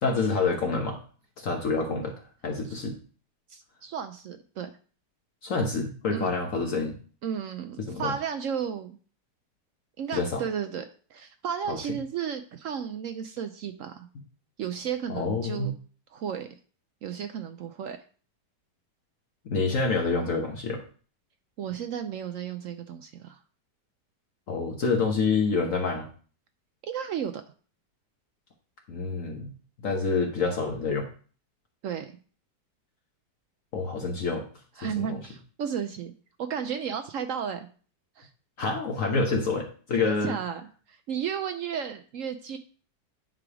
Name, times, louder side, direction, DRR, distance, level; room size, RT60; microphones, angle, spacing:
voice 1, 0.0-1.0 1.4-2.2 2.4-3.0 5.4-6.9 7.9-8.1 10.1-10.4 11.7-11.8 15.1-15.7 19.4-20.8 24.5-26.1 28.9-29.5 29.8-31.1 33.7-34.4 35.0-35.2 38.6-40.4, left 4 dB, 55° left, 1 dB, 1.3 m, -27 dB
voice 2, 3.5-4.7 6.1-6.3 7.2-9.0 10.0-10.9 11.1-14.1 14.6-15.7 16.1-16.5 17.0-18.0 21.6-23.4 26.9-27.4 31.8-32.1 34.8-36.1 36.4-37.7 38.2-38.3 40.0-40.6 40.9-42.6, right 8 dB, 70° right, 8 dB, 0.7 m, -33 dB
9.7 x 3.4 x 4.8 m, 0.41 s
omnidirectional pair, 1.8 m